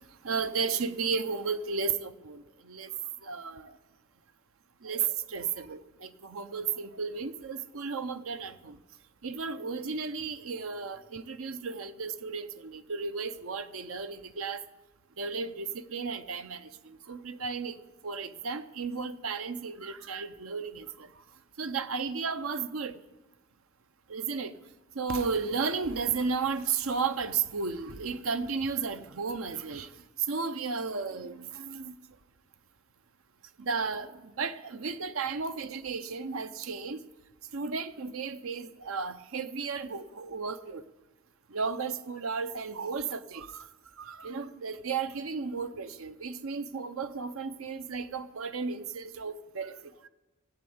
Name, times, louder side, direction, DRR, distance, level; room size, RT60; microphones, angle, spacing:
voice 1, 0.2-2.9 3.2-3.7 4.8-8.8 9.2-14.6 15.2-17.8 18.0-21.1 21.6-23.0 24.1-24.5 25.0-29.9 30.3-32.0 33.6-37.0 37.5-40.8 41.5-43.6 44.0-49.8, right 5 dB, 75° right, 0.7 m, -34 dB
19.5 x 8.5 x 7.9 m
head